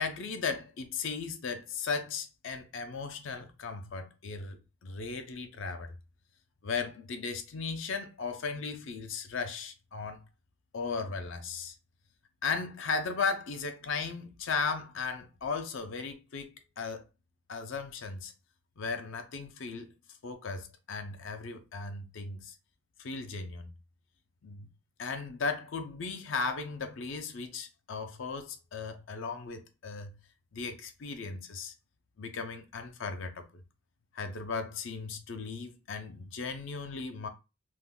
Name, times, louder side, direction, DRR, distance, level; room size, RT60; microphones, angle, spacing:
voice 1, 0.0-5.9 6.6-10.2 10.7-11.7 12.4-17.0 17.5-18.3 18.8-19.9 20.2-22.5 23.0-23.7 24.4-24.7 25.0-30.1 30.5-31.7 32.2-33.5 34.1-37.3, left 4 dB, 70° left, 0.5 m, -36 dB
2.5 x 2.2 x 3.6 m
head